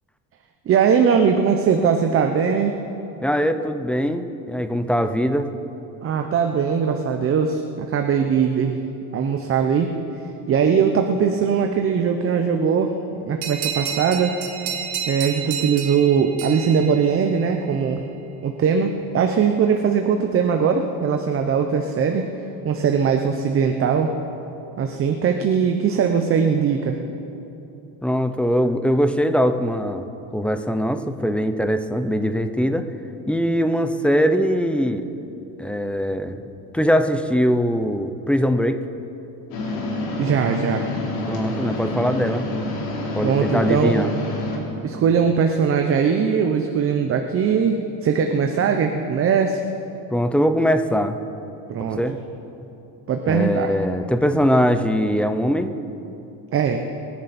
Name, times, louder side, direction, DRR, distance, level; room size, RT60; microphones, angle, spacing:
voice 1, 0.7-2.8 6.0-8.8 9.1-9.9 10.5-12.9 13.2-14.3 15.1-18.0 18.4-22.3 22.6-24.1 24.8-27.0 40.2-40.9 43.2-44.1 44.8-49.6 51.7-52.0 53.1-53.7 56.5-56.9, right 6 dB, 35° right, 5 dB, 0.9 m, -20 dB
voice 2, 3.2-5.5 28.0-30.0 30.3-32.9 33.3-35.1 35.6-36.4 36.7-38.8 41.3-42.5 43.1-44.1 50.1-51.2 51.8-52.2 53.3-55.7, equal, 5° left, 8 dB, 0.6 m, -21 dB
sound 1, 13.4-17.7, right 8 dB, 80° right, 1.7 m, -30 dB
sound 2, 39.5-44.6, left 2 dB, 70° left, 3.9 m, -28 dB
26.5 x 10.5 x 4.3 m, 2.9 s
cardioid pair, 130°, 37 cm